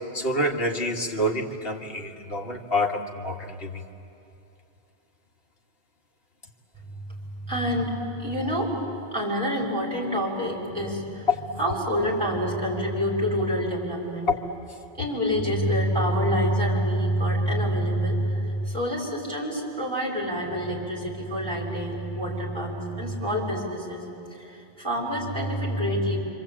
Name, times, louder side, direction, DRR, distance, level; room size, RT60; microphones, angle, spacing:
voice 1, 0.1-3.8 10.9-11.0 11.5-11.6 14.3-14.4, left 1 dB, 55° left, 0 dB, 2.2 m, -27 dB
voice 2, 7.5-7.9 8.2-8.7 9.1-11.3 11.6-14.3 14.9-24.0 24.4-26.2, equal, 25° right, -3 dB, 5.5 m, -27 dB
26.5 x 26.0 x 8.7 m, 2.8 s
omnidirectional pair, 1.2 m